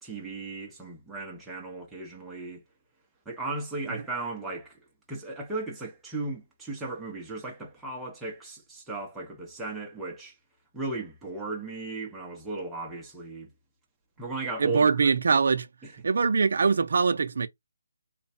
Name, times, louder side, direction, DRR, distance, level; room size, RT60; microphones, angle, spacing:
voice 1, 0.0-2.6 3.3-4.8 5.1-10.3 10.7-13.5 14.2-15.1 15.8-15.9, right 3 dB, 5° right, 0.6 m, -36 dB
voice 2, 14.6-15.7 16.0-17.5, right 5 dB, 50° right, 0.5 m, -23 dB
3.2 x 2.1 x 4.1 m
hypercardioid pair, 175°, 0 cm